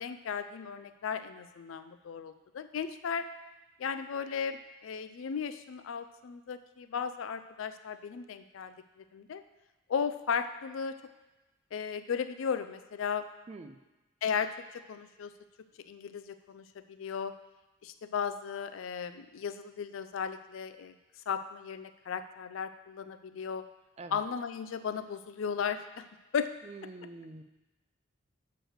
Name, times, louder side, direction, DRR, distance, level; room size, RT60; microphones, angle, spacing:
voice 1, 0.0-3.3 3.8-8.7 9.1-9.4 9.9-11.0 11.7-13.3 14.2-15.3 15.9-16.6 17.0-17.3 17.8-20.9 21.3-23.6 24.1-26.0 26.3-26.5, left 6 dB, 75° left, 11 dB, 0.4 m, -35 dB
voice 2, 13.5-13.8 24.0-24.2 26.6-27.4, right 3 dB, 30° right, 8 dB, 0.3 m, -45 dB
6.3 x 4.8 x 6.4 m, 1.1 s
head